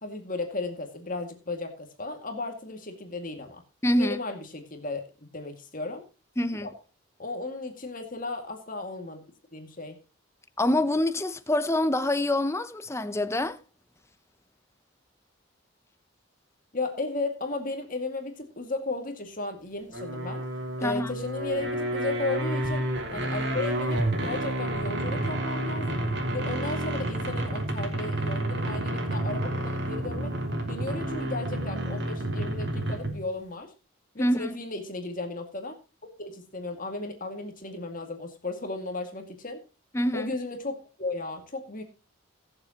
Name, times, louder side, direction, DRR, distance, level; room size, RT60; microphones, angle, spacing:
voice 1, 0.0-3.6 4.0-5.1 5.3-6.0 6.6-6.7 7.2-9.2 9.5-10.0 16.7-20.5 20.8-26.0 26.3-30.4 30.7-33.7 34.1-35.8 36.0-39.6 40.1-41.8, left 2 dB, 40° left, 2.1 m, -35 dB
voice 2, 3.8-4.2 6.4-6.7 10.6-13.6 20.8-21.1 34.2-34.6 39.9-40.3, left 1 dB, 15° left, 0.7 m, -26 dB
sound 1, 19.9-33.3, right 1 dB, 55° right, 3.1 m, -30 dB
21.5 x 7.4 x 2.9 m
head